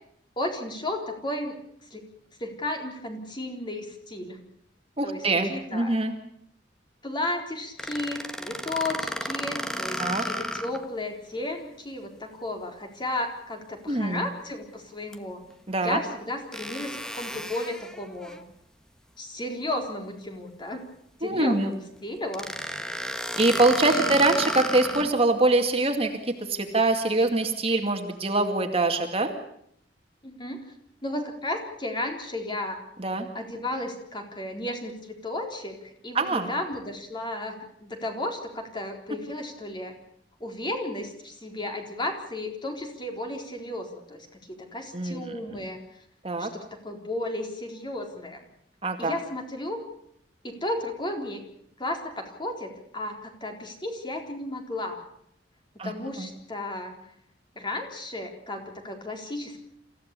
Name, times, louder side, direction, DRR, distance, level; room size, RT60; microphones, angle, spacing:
voice 1, 0.4-1.6 1.9-2.0 2.4-4.4 5.0-5.9 7.0-15.4 15.8-18.4 19.2-20.8 21.2-22.5 23.8-24.1 30.2-30.6 31.0-32.8 33.3-40.0 40.4-44.3 44.6-45.8 46.4-48.4 49.0-49.8 50.4-51.4 51.8-55.0 55.8-56.9 57.6-59.6, left 1 dB, 25° left, 3 dB, 3.9 m, -34 dB
voice 2, 5.0-6.1 10.0-10.2 13.9-14.2 15.7-16.0 21.2-21.7 23.4-26.1 26.4-29.3 33.0-33.3 36.1-36.5 44.9-45.7 46.2-46.5 48.8-49.2 55.8-56.3, right 2 dB, 35° right, 5 dB, 2.2 m, -24 dB
sound 1, 7.8-10.9 11.3-11.4 15.1-15.2 16.5-18.4 22.3-25.2, equal, 5° left, 1.3 m, -33 dB
27.5 x 15.5 x 8.3 m, 0.71 s
head